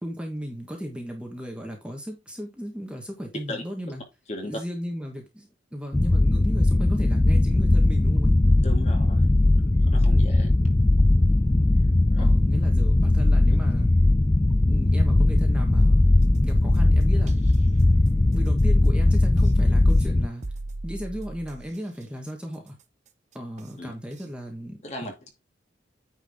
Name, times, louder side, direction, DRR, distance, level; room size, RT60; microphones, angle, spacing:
voice 1, 0.0-4.0 4.5-8.4 12.2-13.9 14.7-16.0 16.4-17.4 18.3-20.4 20.8-22.8 23.3-25.1, equal, 5° right, 1.4 m, -35 dB
voice 2, 4.3-4.6 8.6-9.3 9.8-10.5 12.1-12.2 23.8-23.9 24.8-25.3, left 1 dB, 35° left, 2.5 m, -36 dB
sound 1, 5.9-20.3, left 2 dB, 15° left, 0.4 m, -19 dB
sound 2, 16.2-17.5 19.4-19.5 20.4-21.8 23.6-23.7 24.2-24.3, right 2 dB, 40° right, 0.8 m, -37 dB
9.3 x 4.8 x 3.6 m
head